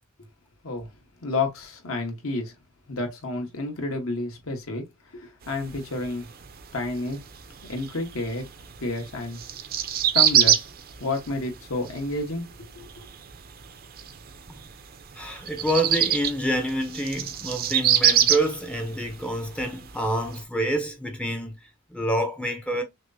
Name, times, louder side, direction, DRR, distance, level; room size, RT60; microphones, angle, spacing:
voice 1, 1.2-2.5 2.9-6.3 6.7-7.2 7.7-8.5 8.8-9.4 10.1-10.7 11.0-12.9, left 2 dB, 70° left, 1.3 m, -30 dB
sound 1, 5.4-20.4, right 9 dB, 45° right, 0.5 m, -26 dB
voice 2, 15.1-22.8, right 1 dB, 5° left, 0.5 m, -27 dB
6.1 x 2.0 x 2.7 m
head